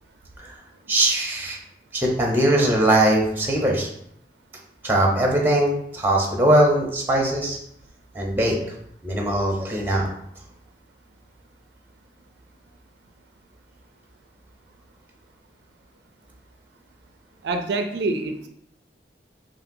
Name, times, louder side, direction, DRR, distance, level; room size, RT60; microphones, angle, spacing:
voice 1, 0.9-1.6 1.9-3.9 4.8-7.6 8.1-8.6 9.0-10.1, right 1 dB, 10° right, 0 dB, 0.7 m, -20 dB
voice 2, 17.4-18.5, right 2 dB, 75° right, 6 dB, 0.4 m, -26 dB
5.7 x 2.7 x 2.6 m, 0.72 s
head